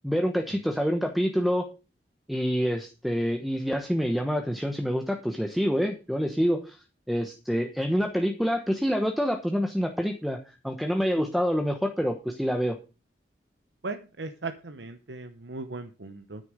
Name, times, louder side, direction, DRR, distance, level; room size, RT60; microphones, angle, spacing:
voice 1, 0.0-1.6 2.3-6.8 7.1-10.4 10.6-12.8, equal, ahead, 4 dB, 1.0 m, -27 dB
voice 2, 13.8-16.4, right 3 dB, 80° right, 8 dB, 0.9 m, -37 dB
9.6 x 9.5 x 5.0 m, 0.32 s
head